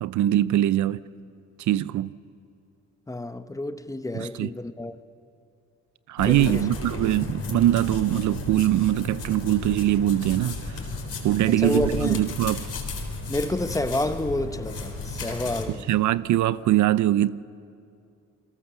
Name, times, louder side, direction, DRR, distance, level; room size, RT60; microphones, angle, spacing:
voice 1, 0.0-1.0 1.6-2.1 4.1-4.5 6.1-10.6 11.2-12.6 15.9-17.4, right 13 dB, 75° right, 0.6 m, -22 dB
voice 2, 3.1-5.0 6.2-6.7 11.5-12.2 13.3-15.9, left 1 dB, 10° left, 1.0 m, -29 dB
sound 1, 6.2-15.7, left 3 dB, 50° left, 4.2 m, -34 dB
29.0 x 22.0 x 7.1 m
cardioid pair, 90°, 30 cm